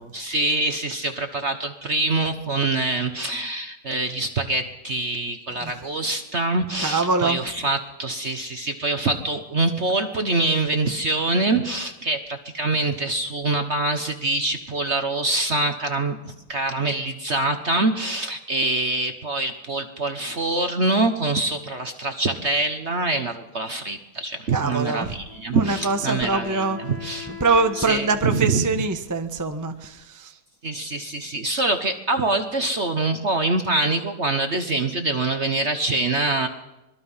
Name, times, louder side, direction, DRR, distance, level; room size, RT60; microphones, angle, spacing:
voice 1, 0.1-26.6 27.0-27.3 27.8-28.6 30.6-36.5, right 2 dB, 40° right, 6 dB, 1.1 m, -25 dB
voice 2, 6.8-7.4 24.5-25.2 25.5-26.8 27.3-30.4, right 3 dB, 15° right, 6 dB, 0.8 m, -24 dB
Wind instrument woodwind instrument, 25.3-28.9, left 10 dB, 20° left, 4.9 m, -41 dB
24.5 x 21.5 x 5.7 m, 0.96 s
omnidirectional pair, 2.4 m